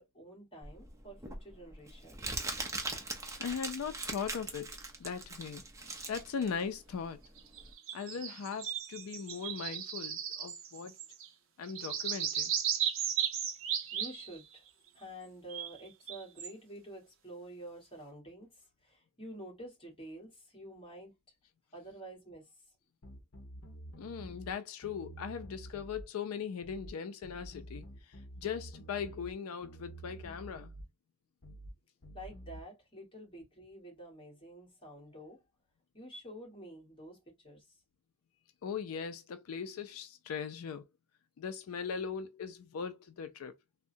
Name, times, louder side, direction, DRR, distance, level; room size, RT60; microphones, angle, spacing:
voice 1, 0.0-2.4 13.9-14.6 14.9-21.1 21.7-22.5 32.1-35.4 35.9-37.6, right 1 dB, 25° left, 1.5 m, -49 dB
Crumpling crinkling, 0.6-7.7, right 3 dB, 15° right, 0.6 m, -41 dB
voice 2, 3.4-4.7 5.0-5.6 6.1-7.2 7.9-10.9 11.6-12.5 24.0-30.7 38.6-40.8 41.4-43.6, left 6 dB, 80° left, 0.4 m, -39 dB
sound 1, 7.4-11.3 11.6-14.6 15.5-16.5, right 9 dB, 65° right, 0.6 m, -36 dB
sound 2, 23.0-24.5 24.8-26.1 26.6-26.9 27.2-29.3 29.6-30.9 31.4-31.7 32.0-32.6, right 1 dB, 60° left, 0.8 m, -49 dB
3.5 x 2.1 x 2.6 m
head